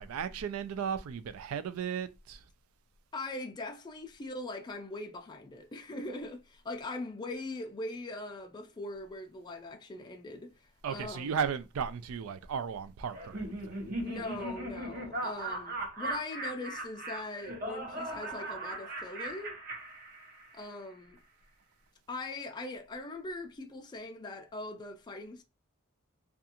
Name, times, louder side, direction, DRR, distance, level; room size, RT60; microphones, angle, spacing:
voice 1, 0.0-2.4 10.8-13.9, right 7 dB, 80° right, 0.4 m, -35 dB
voice 2, 3.1-11.4 14.0-19.6 20.5-21.2 22.1-25.4, left 2 dB, 20° left, 0.3 m, -41 dB
Laughter, 13.1-20.6, right 1 dB, 45° right, 0.8 m, -38 dB
2.5 x 2.3 x 2.8 m
head